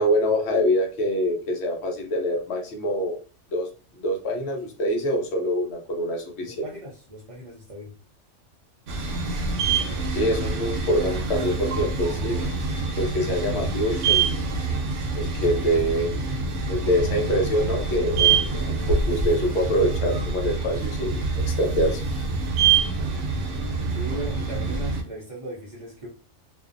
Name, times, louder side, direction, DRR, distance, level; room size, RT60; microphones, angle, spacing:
voice 1, 0.0-3.2 3.5-3.7 4.0-6.6 10.1-12.4 13.0-14.4 15.1-16.1 16.7-22.0, equal, 65° left, 2 dB, 0.9 m, -25 dB
voice 2, 6.4-7.9 23.9-26.1, right 1 dB, 45° right, -5 dB, 0.4 m, -37 dB
sound 1, 8.9-25.0, right 4 dB, 80° right, 0.9 m, -26 dB
2.5 x 2.1 x 2.4 m, 0.36 s
omnidirectional pair, 1.2 m